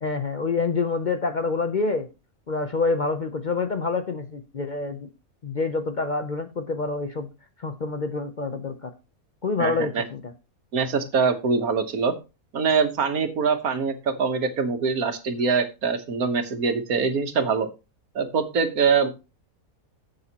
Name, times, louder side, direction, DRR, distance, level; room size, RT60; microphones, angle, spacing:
voice 1, 0.0-2.1 2.5-5.1 5.4-7.3 7.6-8.9 9.4-10.3, left 3 dB, 45° left, 8 dB, 0.6 m, -27 dB
voice 2, 9.6-10.0 10.7-12.1 12.5-17.7 18.1-19.1, right 5 dB, 80° right, 7 dB, 1.7 m, -23 dB
12.5 x 7.9 x 2.9 m, 0.29 s
omnidirectional pair, 1.5 m